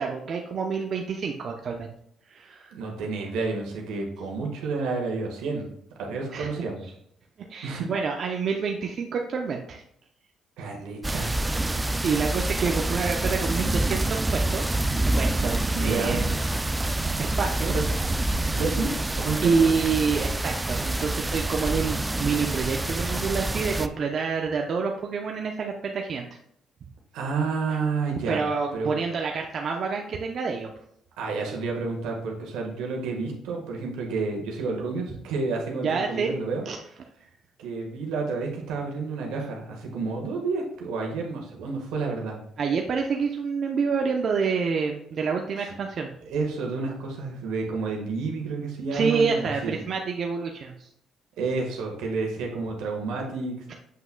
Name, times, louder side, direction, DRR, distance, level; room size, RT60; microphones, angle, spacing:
voice 1, 0.0-1.9 2.3-2.7 6.3-6.5 7.4-9.8 11.6-14.6 15.2-16.3 17.2-17.7 19.4-26.2 27.7-27.8 28.3-30.7 35.7-36.3 36.7-36.8 42.6-46.1 48.9-50.9, right 5 dB, 55° right, 2 dB, 0.7 m, -27 dB
voice 2, 2.7-6.8 7.6-7.9 10.6-11.4 15.7-16.2 17.7-17.8 18.5-18.9 19.2-19.7 27.1-28.4 28.7-28.9 31.2-36.6 37.6-42.4 46.3-49.8 51.4-53.7, right 4 dB, 85° right, 1 dB, 1.5 m, -30 dB
sound 1, 11.0-23.9, right 2 dB, 15° right, 0.4 m, -27 dB
7.6 x 5.8 x 2.3 m, 0.72 s
supercardioid pair, 75°, 0 cm